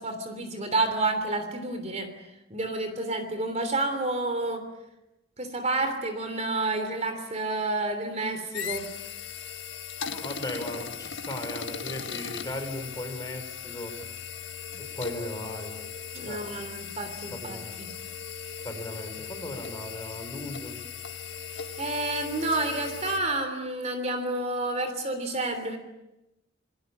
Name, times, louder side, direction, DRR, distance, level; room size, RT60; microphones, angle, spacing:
voice 1, 0.0-2.1 2.5-4.6 5.4-8.9 16.1-17.9 21.5-25.8, right 2 dB, 35° right, 8 dB, 3.3 m, -30 dB
sound 1, 8.5-23.2, left 7 dB, 75° left, 1.6 m, -38 dB
voice 2, 10.1-13.9 14.8-15.8 16.3-16.7 17.4-17.7 18.6-20.7, left 1 dB, 20° left, 5 dB, 5.2 m, -37 dB
28.0 x 21.5 x 8.8 m, 0.94 s
head